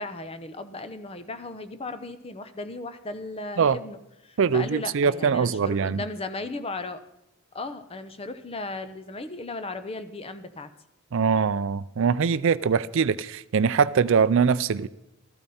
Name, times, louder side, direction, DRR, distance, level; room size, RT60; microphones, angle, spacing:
voice 1, 0.0-7.0 7.5-10.7, left 2 dB, 25° left, 0.8 m, -36 dB
voice 2, 4.4-6.0 11.1-14.9, right 6 dB, 65° right, 0.4 m, -22 dB
14.0 x 12.5 x 4.2 m
head